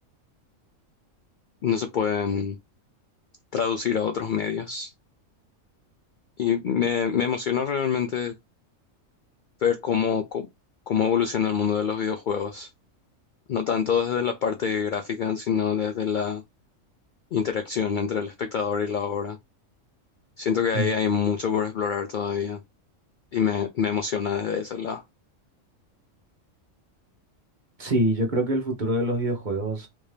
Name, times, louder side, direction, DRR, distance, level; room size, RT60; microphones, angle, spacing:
voice 1, 1.6-2.6 3.5-4.9 6.4-8.3 9.6-10.5 10.9-12.7 13.5-16.4 17.3-19.4 20.4-22.6 23.3-25.0, left 7 dB, 80° left, 0.4 m, -26 dB
voice 2, 27.8-29.9, right 1 dB, 40° right, 1.0 m, -25 dB
3.6 x 2.7 x 3.2 m
omnidirectional pair, 1.4 m